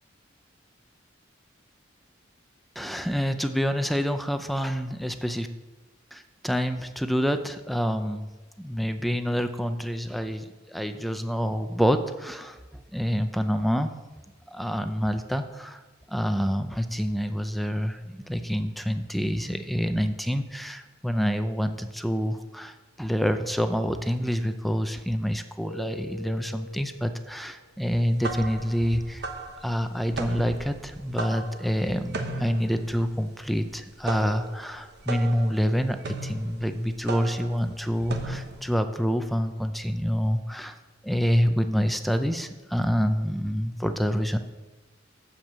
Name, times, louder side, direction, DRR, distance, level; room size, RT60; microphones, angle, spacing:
voice 1, 2.8-5.5 6.1-8.3 8.6-13.9 14.5-15.8 16.1-29.3 29.6-40.8 41.0-44.4, equal, ahead, 8 dB, 0.5 m, -27 dB
Keyboard (musical), 25.7-27.7, left 1 dB, 75° left, 0.8 m, -44 dB
sound 1, 27.9-38.7, right 2 dB, 60° right, 1.0 m, -37 dB
7.9 x 7.2 x 7.5 m, 1.2 s
head